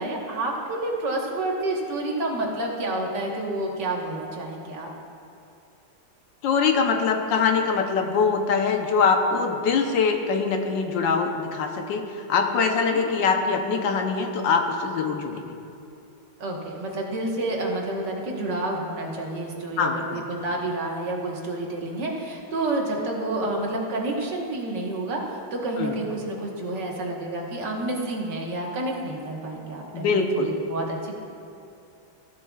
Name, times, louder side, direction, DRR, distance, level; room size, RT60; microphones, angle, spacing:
voice 1, 0.0-4.9 12.8-13.1 16.4-31.1, right 2 dB, 65° right, -1 dB, 1.9 m, -29 dB
voice 2, 6.4-15.4 19.8-20.2 25.8-26.0 29.9-30.6, left 5 dB, 75° left, 4 dB, 1.4 m, -23 dB
15.0 x 10.5 x 2.3 m, 2.6 s
omnidirectional pair, 2.1 m